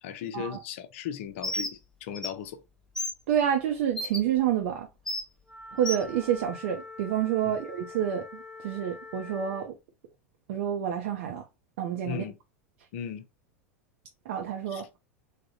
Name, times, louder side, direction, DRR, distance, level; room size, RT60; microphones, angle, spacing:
voice 1, 0.0-2.6 7.4-7.6 12.0-12.4 12.9-13.2 14.7-14.8, left 9 dB, 55° left, 0.5 m, -37 dB
Bird, 1.4-1.7 2.1-2.3 3.0-3.1 4.0-4.2 5.1-5.2 5.8-6.0, left 1 dB, 5° left, 0.6 m, -31 dB
voice 2, 3.3-4.9 5.7-9.7 10.5-11.5 11.8-12.2 14.3-14.8, right 9 dB, 55° right, 0.5 m, -28 dB
Wind instrument woodwind instrument, 5.4-9.7, left 3 dB, 10° right, 1.3 m, -45 dB
3.6 x 2.1 x 2.4 m
figure-of-eight pair, 85°, 8 cm